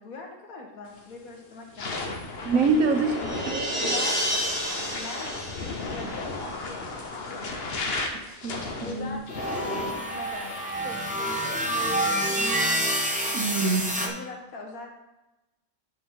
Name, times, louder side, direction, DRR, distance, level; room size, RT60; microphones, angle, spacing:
voice 1, 0.0-2.1 3.1-3.4 3.8-4.3 4.7-5.3 5.5-6.3 6.7-7.5 8.8-12.0 14.0-14.9, left 3 dB, 85° left, 1 dB, 1.8 m, -41 dB
sound 1, 0.9-1.2 1.6-14.1, left 3 dB, 50° left, 1.2 m, -36 dB
sound 2, 2.4-7.0, equal, 20° left, 2.9 m, -31 dB
voice 2, 2.4-3.2 8.4-9.2 13.3-14.0, right 4 dB, 70° right, 5 dB, 1.3 m, -25 dB
sound 3, 9.3-14.1, right 1 dB, 10° right, 0.6 m, -28 dB
9.8 x 5.0 x 3.7 m, 1.0 s
omnidirectional pair, 1.5 m